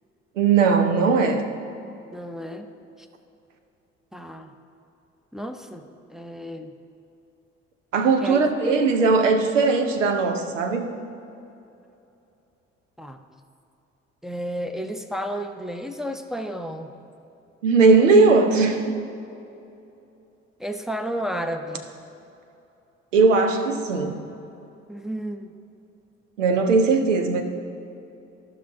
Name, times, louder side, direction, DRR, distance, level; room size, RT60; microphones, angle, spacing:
voice 1, 0.4-1.4 7.9-10.9 17.6-19.0 23.1-24.2 26.4-27.4, right 4 dB, 85° right, 6 dB, 0.7 m, -19 dB
voice 2, 2.1-2.7 3.0-3.1 4.1-4.5 5.3-6.7 8.2-8.4 8.8-8.9 13.0-13.2 14.2-16.9 20.6-21.9 24.9-25.5, equal, ahead, 6 dB, 0.6 m, -32 dB
14.0 x 5.8 x 3.7 m, 2.8 s
figure-of-eight pair, 50°, 37 cm